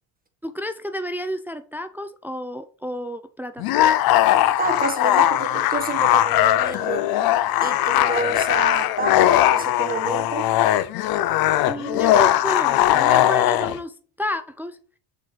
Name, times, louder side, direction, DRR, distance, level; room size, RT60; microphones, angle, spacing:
voice 1, 0.4-3.9 11.7-14.8, equal, 5° right, 0.4 m, -31 dB
sound 1, 3.6-13.8, left 13 dB, 60° left, 0.6 m, -19 dB
voice 2, 4.6-7.0 7.6-10.5, right 3 dB, 20° right, 1.5 m, -28 dB
6.7 x 4.6 x 4.0 m
cardioid pair, 110°, 41 cm